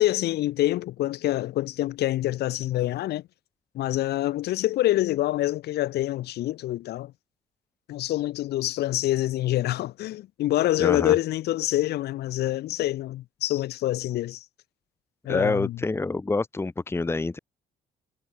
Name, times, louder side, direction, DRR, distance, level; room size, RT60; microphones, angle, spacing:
voice 1, 0.0-3.2 3.7-7.1 7.9-14.4 15.2-15.8, left 15 dB, 75° left, 5.5 m, -26 dB
voice 2, 10.8-11.1 15.3-17.4, left 3 dB, 15° left, 1.5 m, -27 dB
cardioid pair, 110°, 17 cm